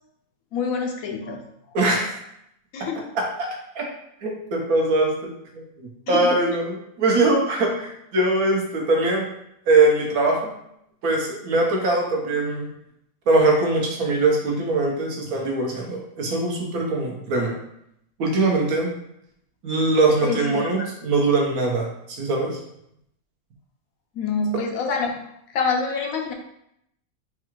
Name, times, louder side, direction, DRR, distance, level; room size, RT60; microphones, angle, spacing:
voice 1, 0.5-1.4 2.7-3.0 6.1-6.3 20.2-20.9 24.2-25.2 25.5-26.3, left 4 dB, 80° left, 3 dB, 1.1 m, -26 dB
voice 2, 1.7-2.2 2.8-2.9 3.1-3.2 3.7-3.8 4.2-9.3 9.7-10.5 11.0-12.7 13.3-17.5 18.2-18.9 19.6-22.6, right 2 dB, 85° right, 0 dB, 1.3 m, -22 dB
4.6 x 2.4 x 3.0 m, 0.77 s
omnidirectional pair, 1.5 m